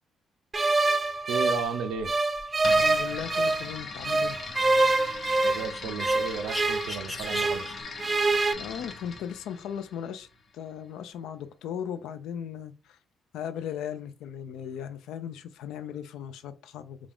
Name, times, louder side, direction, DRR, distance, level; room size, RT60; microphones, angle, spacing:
sound 1, 0.5-3.7 4.0-7.7 8.0-8.5, right 2 dB, 30° right, 0.4 m, -25 dB
sound 2, 1.0-7.8, left 2 dB, 15° left, 0.7 m, -44 dB
voice 1, 1.3-2.1 5.4-7.7, right 6 dB, 90° right, 0.5 m, -34 dB
sound 3, 2.6-10.4, left 4 dB, 50° left, 0.7 m, -40 dB
voice 2, 2.8-4.4 8.5-10.3 10.5-13.0 13.3-17.0, left 9 dB, 85° left, 0.4 m, -37 dB
3.6 x 2.4 x 3.5 m
cardioid pair, 90°, 0 cm